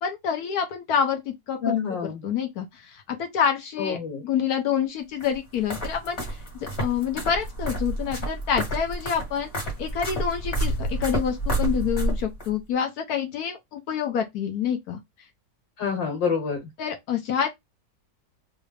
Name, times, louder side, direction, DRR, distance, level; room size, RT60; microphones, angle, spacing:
voice 1, 0.0-4.0 4.2-6.4 6.8-15.0 16.8-17.5, left 8 dB, 65° left, 1.0 m, -27 dB
voice 2, 1.6-2.2 3.8-4.2 15.8-16.7, left 6 dB, 90° left, 1.8 m, -27 dB
sound 1, 5.2-12.5, right 1 dB, 40° left, 1.6 m, -29 dB
3.2 x 2.5 x 3.2 m
omnidirectional pair, 2.0 m